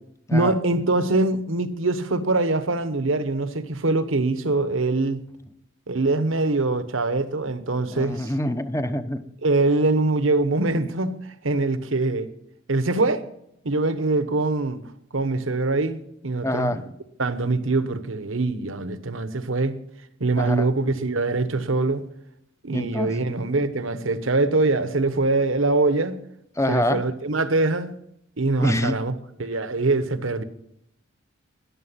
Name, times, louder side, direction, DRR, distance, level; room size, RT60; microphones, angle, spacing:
voice 1, 0.3-5.2 5.9-8.3 9.4-12.3 12.7-13.2 13.6-14.8 15.1-16.8 17.2-19.8 20.2-22.1 22.6-26.2 26.7-27.9 28.4-29.1 29.4-30.4, right 2 dB, 70° right, 1.1 m, -23 dB
voice 2, 7.9-9.2 16.4-16.8 20.4-20.7 22.7-23.3 26.6-27.0 28.6-29.0, left 1 dB, 15° left, 0.9 m, -25 dB
14.0 x 10.5 x 5.7 m
head